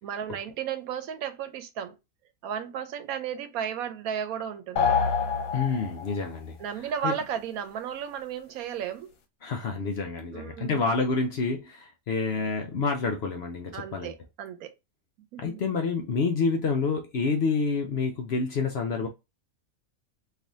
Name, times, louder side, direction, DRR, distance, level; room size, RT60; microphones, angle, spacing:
voice 1, 0.0-2.0 2.4-5.0 6.6-9.1 10.3-11.0 13.7-14.7 15.3-15.6, right 8 dB, 80° right, 1.1 m, -34 dB
sound 1, 4.8-6.3, left 6 dB, 75° left, 1.1 m, -26 dB
voice 2, 5.5-7.1 9.4-14.1 15.4-19.1, left 4 dB, 60° left, 0.7 m, -28 dB
3.3 x 2.6 x 2.6 m
omnidirectional pair, 1.5 m